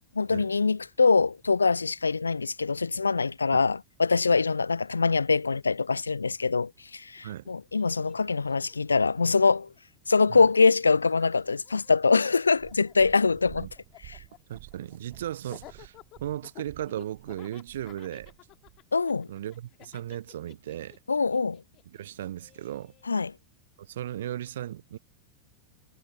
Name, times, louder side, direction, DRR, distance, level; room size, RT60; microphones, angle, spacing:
voice 1, 0.2-9.7 10.1-13.7 14.0-14.2 18.9-19.3 21.1-21.6 23.1-23.3, left 4 dB, 75° left, 0.5 m, -24 dB
Laughter, 7.2-7.3 7.4-9.8 10.1-23.1, left 18 dB, 35° left, 2.6 m, -54 dB
Purr, 12.5-18.8 19.6-19.7, right 23 dB, 40° right, 3.1 m, -51 dB
voice 2, 14.5-15.9 16.2-18.3 19.3-21.0 21.9-22.9 23.8-25.0, right 12 dB, 60° right, 0.5 m, -36 dB
figure-of-eight pair, 90°, 0 cm